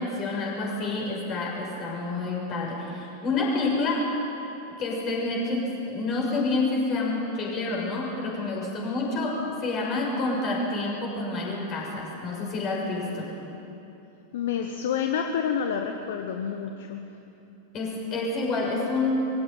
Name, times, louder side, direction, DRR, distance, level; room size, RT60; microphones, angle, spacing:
voice 1, 0.0-4.1 4.8-13.3 17.7-19.3, left 2 dB, 35° left, -2 dB, 6.6 m, -28 dB
voice 2, 14.3-17.1, left 7 dB, 55° left, 5 dB, 1.2 m, -28 dB
22.0 x 16.5 x 9.3 m, 2.9 s
figure-of-eight pair, 90°, 0 cm